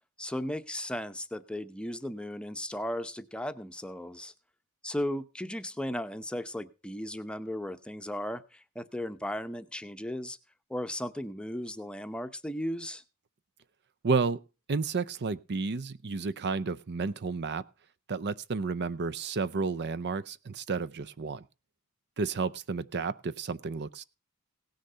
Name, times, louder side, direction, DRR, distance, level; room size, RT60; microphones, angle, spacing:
voice 1, 0.2-4.3 4.8-10.4 10.7-13.0, left 1 dB, 5° left, 10 dB, 0.7 m, -36 dB
voice 2, 14.0-14.4 14.7-17.6 18.1-21.4 22.2-24.0, right 4 dB, 50° right, 16 dB, 0.6 m, -31 dB
17.5 x 6.6 x 5.5 m, 0.32 s
head